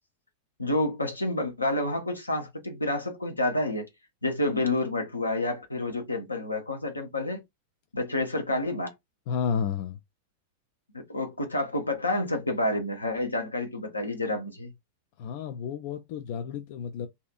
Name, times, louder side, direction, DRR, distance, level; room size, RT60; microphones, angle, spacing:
voice 1, 0.6-3.9 4.2-7.4 7.9-8.9 10.9-14.7, left 2 dB, 80° left, 0.7 m, -29 dB
voice 2, 9.3-10.0 15.2-17.1, left 7 dB, 50° left, 0.3 m, -31 dB
2.7 x 2.3 x 2.4 m
figure-of-eight pair, 90°, 0 cm